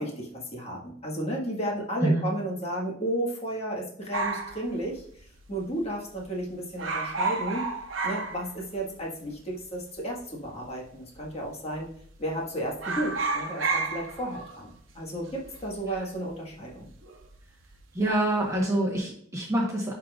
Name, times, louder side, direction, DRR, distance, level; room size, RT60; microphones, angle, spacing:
voice 1, 0.0-5.0 5.5-7.6 8.0-11.9 12.2-16.9, right 1 dB, 35° left, -3 dB, 1.6 m, -33 dB
voice 2, 2.0-2.3 15.9-16.0 17.9-19.9, right 1 dB, 15° right, -3 dB, 1.1 m, -26 dB
sound 1, 4.1-5.6 5.8-5.9 6.2-6.4 6.7-9.0 9.3-9.4 10.2-10.8 11.2-11.4 11.7-12.4 12.7-17.3 17.6-18.1, right 3 dB, 85° right, 0.9 m, -32 dB
10.0 x 3.8 x 2.4 m, 0.62 s
head